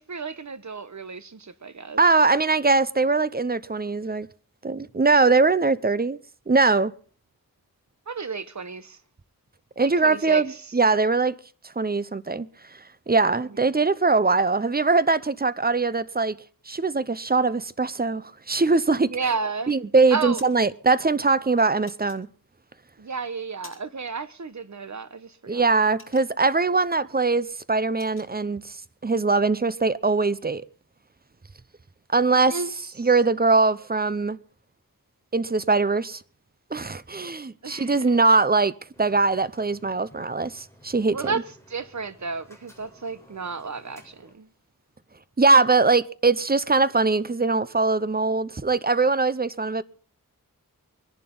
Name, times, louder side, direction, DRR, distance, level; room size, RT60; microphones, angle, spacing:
voice 1, 0.0-2.0 8.1-9.0 9.8-10.6 13.5-13.6 19.0-19.8 20.1-20.4 23.0-25.7 32.5-32.7 33.0-33.1 37.6-38.1 41.1-44.5, right 4 dB, 50° right, 1.1 m, -32 dB
voice 2, 2.0-4.3 4.6-6.2 6.5-6.9 9.8-11.3 11.6-16.4 16.7-19.1 19.7-22.3 25.5-28.8 29.0-30.6 32.1-32.6 33.0-34.4 35.3-36.2 36.7-38.7 39.0-41.2 45.4-49.8, right 3 dB, 25° right, 0.6 m, -21 dB
sound 1, 20.4-20.7 21.9-22.7 23.2-24.1 24.4-24.6 25.0-26.7 27.1-27.3 27.5-28.3, left 3 dB, 35° left, 2.6 m, -50 dB
sound 2, 38.9-44.3, equal, 10° left, 4.0 m, -54 dB
24.0 x 11.0 x 3.9 m
wide cardioid pair, 70°, 36 cm